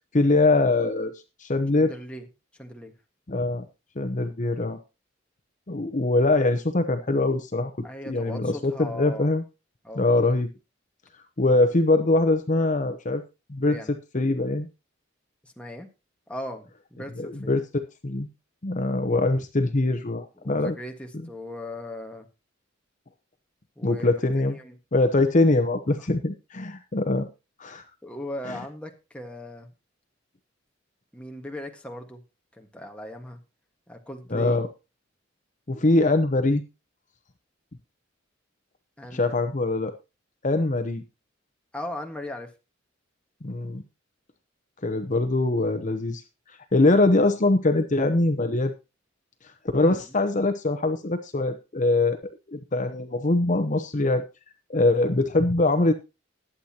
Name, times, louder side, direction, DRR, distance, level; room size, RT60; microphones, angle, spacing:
voice 1, 0.1-1.1 1.4-1.9 3.3-3.7 4.0-4.8 5.7-7.7 8.1-9.4 10.0-10.5 11.4-13.2 13.5-13.8 14.1-14.7 17.2-18.3 18.6-20.7 23.8-24.6 24.9-27.3 27.6-27.8 34.3-34.7 35.7-36.6 39.1-39.9 40.4-41.0 43.4-43.8 44.8-46.2 46.7-48.7 49.7-52.2 52.5-54.2 54.7-55.9, left 2 dB, 40° left, 8 dB, 0.8 m, -23 dB
voice 2, 1.8-2.3 2.6-2.9 7.8-9.3 9.8-10.0 13.6-13.9 15.4-15.9 16.3-17.5 20.4-22.3 23.8-24.1 24.4-24.8 28.0-29.7 31.1-32.2 32.5-33.4 33.9-34.6 36.0-36.1 39.0-39.4 41.7-42.5 49.7-50.0, left 1 dB, 5° left, 2 dB, 1.5 m, -38 dB
20.5 x 8.1 x 2.9 m, 0.28 s
head